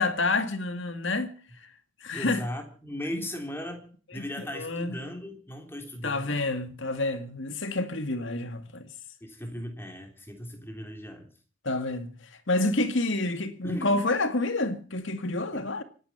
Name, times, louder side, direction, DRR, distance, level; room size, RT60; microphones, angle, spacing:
voice 1, 0.0-1.7 2.0-2.5 3.1-3.3 4.1-5.0 6.0-8.9 11.6-15.8, left 2 dB, 60° left, 2.1 m, -29 dB
voice 2, 2.1-6.4 9.2-11.3 13.6-14.0 15.5-15.6, left 1 dB, 10° left, 3.4 m, -37 dB
24.5 x 10.5 x 5.7 m
head